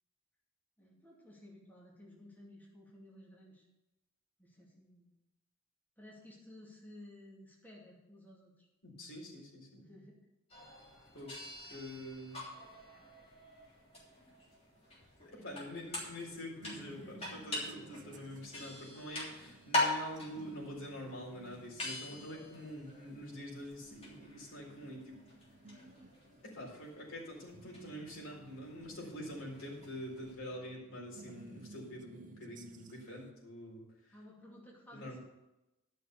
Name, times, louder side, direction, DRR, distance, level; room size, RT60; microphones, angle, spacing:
voice 1, 0.8-3.7 4.4-5.1 6.0-8.7 9.7-10.2 15.4-15.9 16.8-17.3 28.9-29.0 34.1-35.2, left 1 dB, 10° left, -5 dB, 2.6 m, -55 dB
voice 2, 8.8-9.8 11.1-11.3 11.7-12.4 15.2-25.2 26.4-34.1 34.9-35.2, equal, 65° left, -2 dB, 4.1 m, -46 dB
sound 1, 10.5-30.3, left 2 dB, 30° left, 3.3 m, -43 dB
sound 2, 15.8-33.3, right 2 dB, 40° right, 0.8 m, -58 dB
11.5 x 6.3 x 6.8 m, 0.96 s
head